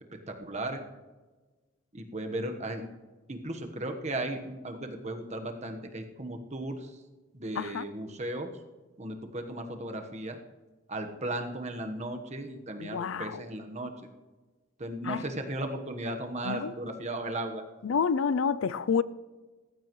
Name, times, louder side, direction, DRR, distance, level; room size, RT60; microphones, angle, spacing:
voice 1, 0.3-0.8 1.9-2.9 3.3-7.0 7.3-8.5 9.0-10.4 10.9-13.9 14.8-17.6, right 1 dB, 35° right, 1.2 m, -36 dB
voice 2, 7.6-7.9 12.8-13.4 15.0-15.2 16.4-16.7 17.8-19.0, left 6 dB, 75° left, 0.4 m, -28 dB
18.0 x 14.5 x 3.1 m
head